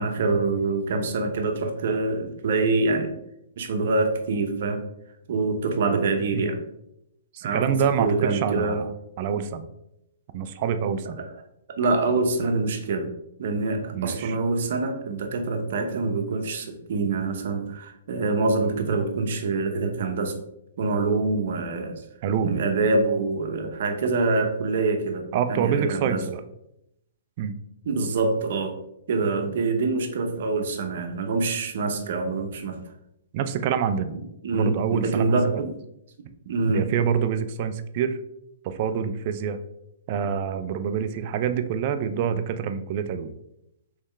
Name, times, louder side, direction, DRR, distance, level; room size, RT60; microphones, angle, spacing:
voice 1, 0.0-3.2 3.6-4.8 5.3-6.6 7.4-8.8 11.2-11.3 11.8-13.1 13.4-20.3 20.8-21.9 22.4-25.2 25.5-26.2 27.8-28.7 29.1-32.8 34.4-35.7 36.5-36.9, right 3 dB, 60° right, 4 dB, 0.8 m, -25 dB
voice 2, 7.3-8.9 9.2-9.7 10.3-11.2 13.9-14.4 22.2-22.6 25.3-26.4 27.4-27.5 33.3-34.1 34.5-35.6 36.7-38.2 38.6-39.6 40.1-43.3, right 7 dB, 40° right, 10 dB, 0.4 m, -26 dB
3.5 x 3.2 x 3.2 m, 0.81 s
hypercardioid pair, 145°, 0 cm